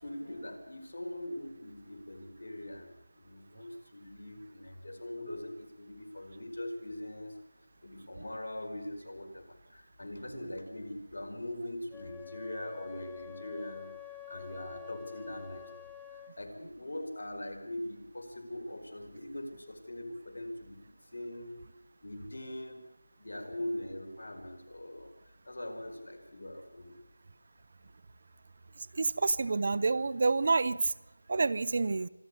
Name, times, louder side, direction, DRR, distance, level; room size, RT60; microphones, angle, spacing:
voice 1, 0.0-7.4 7.8-21.6 22.0-22.8 23.2-25.1 25.4-27.0, left 1 dB, 70° left, 5 dB, 4.7 m, -42 dB
Wind instrument woodwind instrument, 11.9-16.4, left 12 dB, 5° left, 0.9 m, -48 dB
voice 2, 28.9-30.9 31.3-32.1, right 3 dB, 40° right, 18 dB, 0.6 m, -28 dB
26.0 x 10.5 x 9.7 m, 1.0 s
figure-of-eight pair, 170°, 0 cm